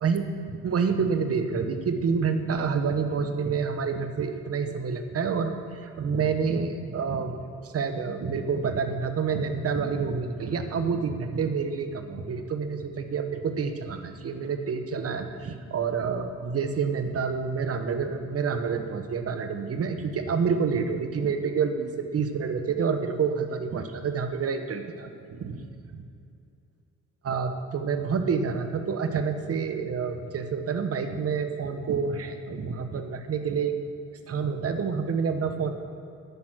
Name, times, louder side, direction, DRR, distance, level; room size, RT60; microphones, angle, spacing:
voice 1, 0.0-25.6 25.9-26.0 27.2-33.8 34.3-35.7, right 5 dB, 50° right, 7 dB, 1.2 m, -28 dB
10.5 x 8.7 x 6.1 m, 2.6 s
cardioid pair, 90°, 30 cm